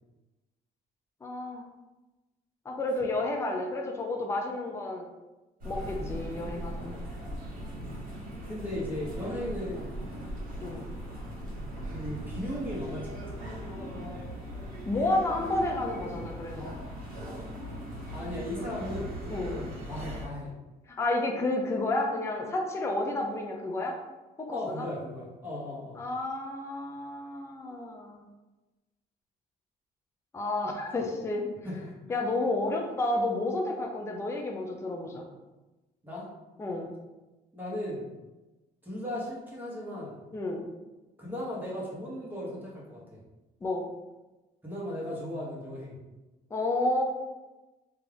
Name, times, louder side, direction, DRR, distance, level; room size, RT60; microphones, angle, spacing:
voice 1, 1.2-1.6 2.7-5.1 5.6-7.0 10.6-10.8 14.9-16.7 19.3-19.6 20.9-24.0 24.4-24.9 26.0-28.2 30.3-31.5 32.1-35.2 36.6-36.9 40.3-40.6 43.6-43.8 46.5-47.0, left 2 dB, 15° left, 1 dB, 0.4 m, -31 dB
sound 1, 5.6-20.3, equal, 55° right, 1.2 m, -39 dB
voice 2, 7.5-8.0 8.5-10.0 11.9-13.5 18.1-20.5 24.5-26.0 31.6-31.9 36.0-36.3 37.5-38.1 38.8-40.2 41.2-43.2 44.6-46.0, left 1 dB, 10° right, -5 dB, 1.1 m, -37 dB
2.6 x 2.3 x 3.3 m, 1.1 s
cardioid pair, 110°, 17 cm